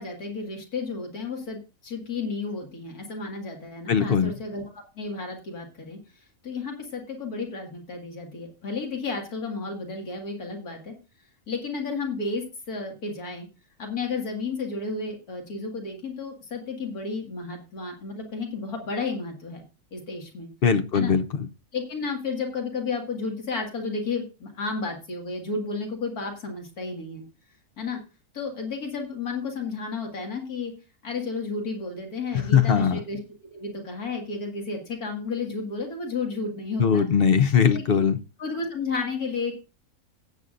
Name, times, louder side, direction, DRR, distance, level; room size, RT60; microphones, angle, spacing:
voice 1, 0.0-6.0 6.4-10.9 11.5-13.5 13.8-19.6 19.9-20.5 20.9-21.1 21.7-27.2 27.8-28.0 28.3-30.7 31.0-33.2 33.5-37.1 37.7-38.0 38.4-39.6, left 4 dB, 85° left, 2 dB, 2.5 m, -32 dB
voice 2, 3.9-4.3 20.6-21.5 32.5-33.0 36.8-38.2, left 7 dB, 50° left, 10 dB, 0.7 m, -20 dB
17.5 x 8.2 x 2.5 m, 0.30 s
omnidirectional pair, 1.5 m